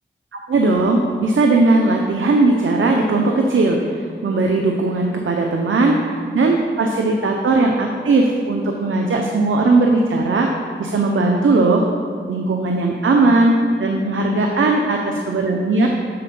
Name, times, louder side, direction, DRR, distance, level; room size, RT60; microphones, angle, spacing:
voice 1, 0.3-10.5 10.8-11.8 12.3-15.9, right 2 dB, 90° right, 1 dB, 0.6 m, -18 dB
9.6 x 4.2 x 5.4 m, 2.1 s
wide cardioid pair, 60°, 20 cm